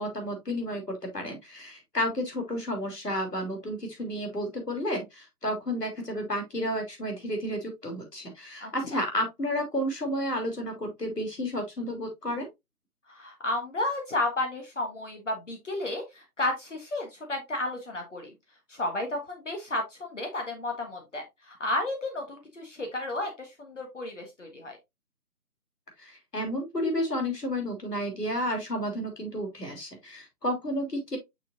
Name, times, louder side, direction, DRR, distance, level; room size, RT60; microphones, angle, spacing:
voice 1, 0.0-12.5 26.0-31.2, equal, 85° left, 3.3 m, -31 dB
voice 2, 8.6-9.0 13.1-18.3 18.7-24.8, left 2 dB, 50° left, 1.6 m, -32 dB
6.5 x 6.1 x 2.5 m
figure-of-eight pair, 155°, 47 cm